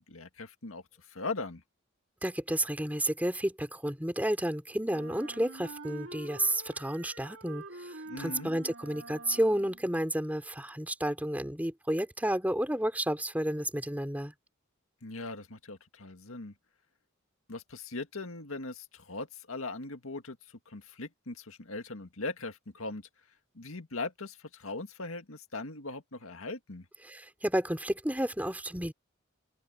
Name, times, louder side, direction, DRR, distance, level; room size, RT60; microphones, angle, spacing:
voice 1, 0.0-1.6 8.1-8.5 15.0-16.5 17.5-23.0 23.5-26.9, left 3 dB, 85° left, 1.9 m, -40 dB
voice 2, 2.2-14.3 27.0-28.9, right 1 dB, 10° right, 2.8 m, -31 dB
Wind instrument woodwind instrument, 4.9-9.9, right 2 dB, 70° right, 3.3 m, -46 dB
open air
head